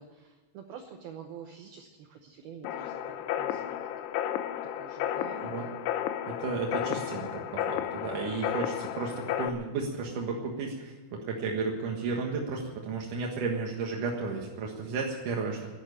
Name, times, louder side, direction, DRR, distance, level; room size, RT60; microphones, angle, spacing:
voice 1, 0.0-3.9 4.6-5.7, right 7 dB, 80° right, 4 dB, 2.1 m, -47 dB
sound 1, 2.6-9.5, left 11 dB, 80° left, 3.0 m, -33 dB
voice 2, 6.3-15.7, right 4 dB, 60° right, -1 dB, 2.3 m, -33 dB
12.0 x 11.5 x 9.8 m, 1.3 s
omnidirectional pair, 5.7 m